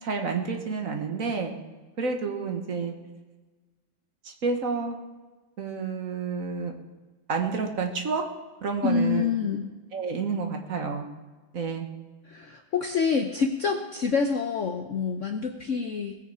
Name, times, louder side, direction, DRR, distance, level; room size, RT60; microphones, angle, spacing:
voice 1, 0.0-1.5 2.0-2.9 4.2-5.0 5.6-6.7 7.3-8.2 8.6-9.3 9.9-11.1 11.5-11.9, right 5 dB, 45° right, 3 dB, 1.5 m, -29 dB
voice 2, 8.8-9.7 12.2-16.2, left 5 dB, 85° left, 5 dB, 0.6 m, -27 dB
18.5 x 6.8 x 4.9 m, 1.2 s
omnidirectional pair, 2.3 m